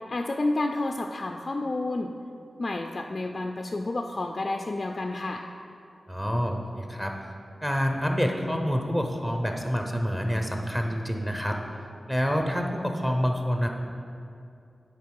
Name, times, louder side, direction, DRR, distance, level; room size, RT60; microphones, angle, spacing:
voice 1, 0.1-2.1 2.6-5.4, left 2 dB, 40° left, 4 dB, 0.3 m, -30 dB
voice 2, 6.1-7.1 7.6-11.6 12.1-13.7, equal, 5° right, 2 dB, 0.7 m, -27 dB
10.5 x 4.4 x 4.7 m, 2.6 s
wide cardioid pair, 110°, 0 cm